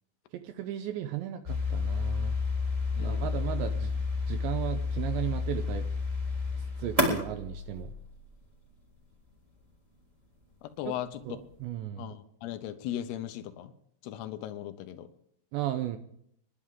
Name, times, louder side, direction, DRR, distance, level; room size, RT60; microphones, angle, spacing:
voice 1, 0.3-2.4 3.0-3.9 4.3-5.9 6.6-7.9 10.9-11.0 11.3-12.1 15.5-16.0, right 12 dB, 80° right, 8 dB, 2.7 m, -35 dB
sound 1, 1.4-8.4, left 3 dB, 10° right, 2.5 m, -30 dB
voice 2, 2.9-3.4 10.6-11.2 12.0-13.7 14.0-15.1, left 11 dB, 80° left, 8 dB, 2.3 m, -38 dB
26.5 x 11.5 x 3.7 m, 0.72 s
omnidirectional pair, 5.9 m